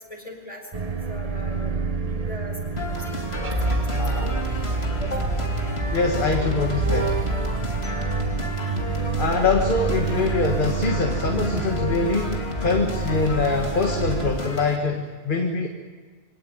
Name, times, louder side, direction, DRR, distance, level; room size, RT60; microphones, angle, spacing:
voice 1, 0.1-1.8 2.0-3.0 3.3-4.2 5.0-5.5 8.2-8.4, equal, 30° left, 2 dB, 5.0 m, -38 dB
sound 1, 0.7-14.3, right 4 dB, 35° right, 1.0 m, -28 dB
sound 2, 2.8-14.8, left 2 dB, 60° left, 2.7 m, -32 dB
voice 2, 4.0-4.3 5.9-7.2 9.2-15.7, left 3 dB, 45° left, 3 dB, 1.8 m, -24 dB
24.0 x 18.0 x 9.1 m, 1.5 s
omnidirectional pair, 1.2 m